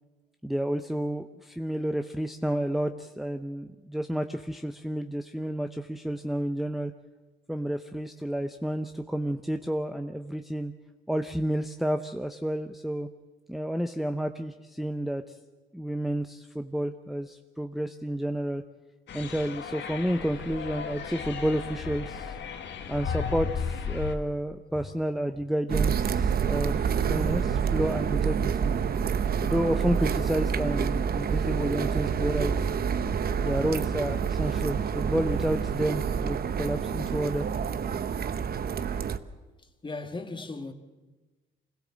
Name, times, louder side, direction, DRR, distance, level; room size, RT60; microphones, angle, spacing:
voice 1, 0.4-6.9 7.5-10.7 11.1-13.1 13.5-15.3 15.7-18.6 19.1-22.3 22.9-28.7 29.4-32.5 33.4-37.5, right 1 dB, ahead, 0.8 m, -30 dB
sound 1, 19.1-24.1, left 6 dB, 65° left, 1.9 m, -35 dB
sound 2, 25.7-39.2, right 7 dB, 50° right, 0.9 m, -28 dB
voice 2, 39.8-40.7, left 3 dB, 25° left, 2.0 m, -37 dB
25.0 x 16.5 x 7.5 m
cardioid pair, 90°, 20 cm